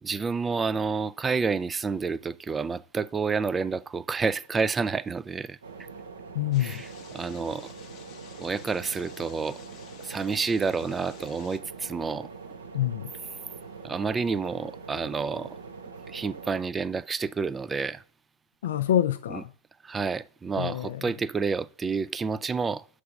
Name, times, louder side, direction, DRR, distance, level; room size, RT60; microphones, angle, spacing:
voice 1, 0.0-5.6 6.6-6.9 7.1-7.7 8.4-9.6 10.0-12.3 13.8-15.6 16.1-18.0 19.3-19.4 19.8-22.9, right 5 dB, 15° right, 0.3 m, -29 dB
sound 1, 5.6-16.6, right 5 dB, 80° right, 0.8 m, -43 dB
voice 2, 6.3-6.8 12.7-13.1 18.6-19.5 20.5-21.1, left 12 dB, 70° left, 0.4 m, -27 dB
sound 2, 6.5-11.6, left 9 dB, 40° left, 0.7 m, -51 dB
6.8 x 3.3 x 5.2 m
hypercardioid pair, 100°, 0 cm